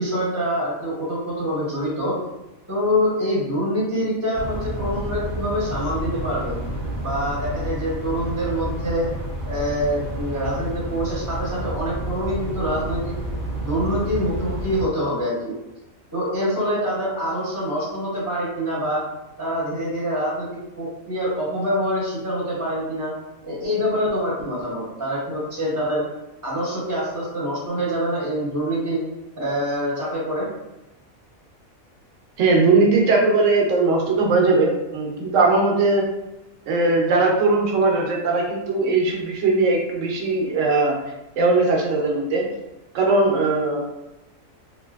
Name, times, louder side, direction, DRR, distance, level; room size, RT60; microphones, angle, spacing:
voice 1, 0.0-2.1 2.7-6.5 7.0-9.1 9.4-13.1 13.6-15.5 16.1-19.0 19.4-23.1 23.4-26.0 26.4-29.0 29.4-30.5, equal, 15° right, -7 dB, 0.8 m, -25 dB
sound 1, 4.3-14.9, right 1 dB, 40° right, 0.5 m, -30 dB
voice 2, 32.4-36.0 36.7-41.0 41.4-42.4 42.9-43.8, right 3 dB, 70° right, 0 dB, 0.9 m, -19 dB
3.1 x 2.7 x 2.3 m, 0.96 s
omnidirectional pair, 1.4 m